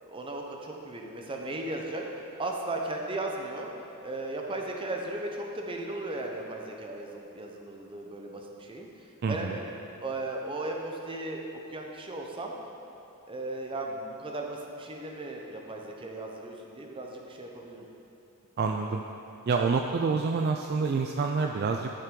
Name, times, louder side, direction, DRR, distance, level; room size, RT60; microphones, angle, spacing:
voice 1, 0.0-2.0 2.4-3.7 4.0-9.7 10.0-11.4 11.7-12.5 13.3-17.9, right 2 dB, 25° right, 1 dB, 0.8 m, -36 dB
voice 2, 9.2-9.6 18.6-19.0 19.5-21.9, right 4 dB, 45° right, 3 dB, 0.3 m, -27 dB
12.5 x 5.4 x 3.8 m, 2.8 s
head